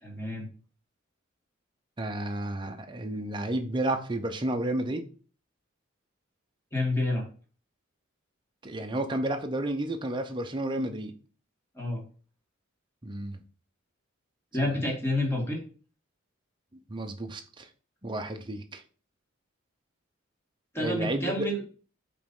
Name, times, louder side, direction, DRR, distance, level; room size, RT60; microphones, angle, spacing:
voice 1, 0.0-0.5 6.7-7.2 11.8-12.0 14.5-15.6 20.7-21.6, left 1 dB, 10° left, 2.2 m, -29 dB
voice 2, 2.0-5.0 8.6-11.1 13.0-13.4 14.6-14.7 16.9-17.7 18.0-18.8 20.8-21.5, right 1 dB, 25° right, 0.8 m, -31 dB
5.6 x 4.2 x 5.4 m
head